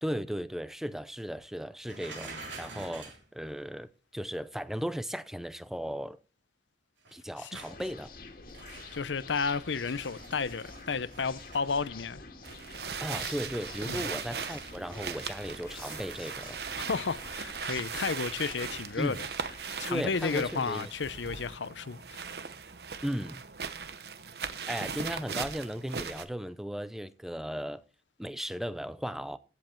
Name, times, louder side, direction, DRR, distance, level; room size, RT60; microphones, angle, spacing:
voice 1, 0.0-6.2 7.1-8.1 13.0-16.6 19.0-19.2 19.9-20.9 23.0-23.4 24.7-27.8 28.2-29.4, equal, ahead, 0.5 m, -36 dB
sound 1, 1.8-3.3 7.0-7.8 8.5-9.1 9.5-11.7 14.0-14.3, right 3 dB, 90° right, 3.3 m, -47 dB
sound 2, 7.6-20.8, left 3 dB, 50° left, 2.0 m, -48 dB
voice 2, 8.9-12.2 13.8-14.1 16.9-19.2 19.8-22.3, left 5 dB, 90° left, 0.7 m, -32 dB
sound 3, 12.4-26.2, right 6 dB, 65° right, 1.0 m, -39 dB
15.0 x 7.7 x 4.5 m
head